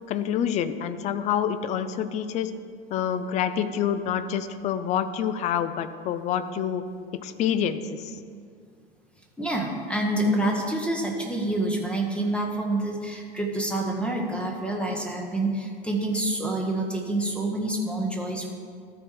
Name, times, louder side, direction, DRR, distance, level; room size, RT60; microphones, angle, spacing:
voice 1, 0.1-2.5 2.9-6.8 7.1-8.1, left 9 dB, 25° left, 12 dB, 0.4 m, -27 dB
voice 2, 9.4-18.5, right 1 dB, 5° left, 0 dB, 1.0 m, -27 dB
13.0 x 4.5 x 4.7 m, 2.2 s
figure-of-eight pair, 80°, 30 cm